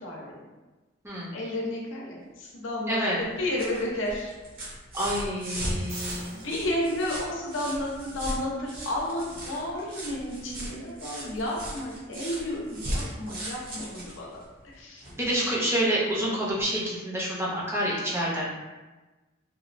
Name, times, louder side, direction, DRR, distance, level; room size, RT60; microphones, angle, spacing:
voice 1, 0.0-0.4 1.3-4.3 5.7-14.4 14.6-15.0, left 1 dB, 75° left, -3 dB, 0.7 m, -32 dB
voice 2, 1.0-1.3 2.9-3.2 4.9-6.3 15.1-18.6, equal, 10° right, -5 dB, 0.5 m, -28 dB
sound 1, 3.2-15.2 16.6-16.7, right 1 dB, 45° right, 0.7 m, -38 dB
sound 2, 5.7-7.9 11.3-11.4, right 1 dB, 85° right, 1.3 m, -45 dB
2.9 x 2.2 x 2.4 m, 1.2 s
head